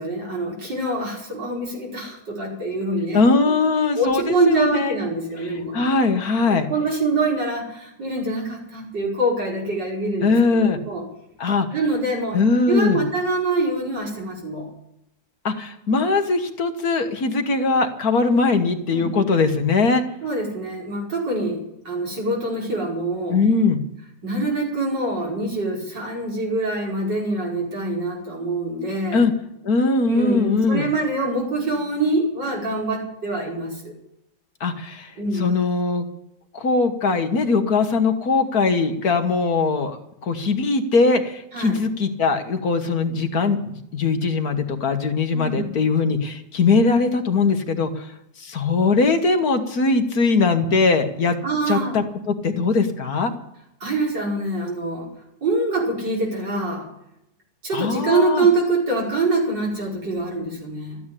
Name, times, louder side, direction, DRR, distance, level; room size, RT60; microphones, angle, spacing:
voice 1, 0.0-3.5 4.0-5.9 6.5-11.0 11.7-12.4 12.7-14.7 18.9-19.1 20.2-23.4 24.2-29.3 30.0-33.9 35.2-35.5 41.5-41.8 45.3-45.7 51.4-52.0 53.8-55.1 55.4-56.9 57.6-61.0, right 2 dB, 70° right, -3 dB, 6.0 m, -25 dB
voice 2, 3.1-5.0 5.7-6.7 10.2-10.8 11.4-11.7 12.3-13.0 15.5-20.0 23.3-23.8 29.1-29.3 29.6-30.8 34.6-36.1 36.5-40.0 40.2-48.1 48.4-51.4 51.7-53.3 57.7-58.5, left 4 dB, 55° left, 6 dB, 1.7 m, -20 dB
14.0 x 9.4 x 9.9 m, 0.81 s
omnidirectional pair, 1.9 m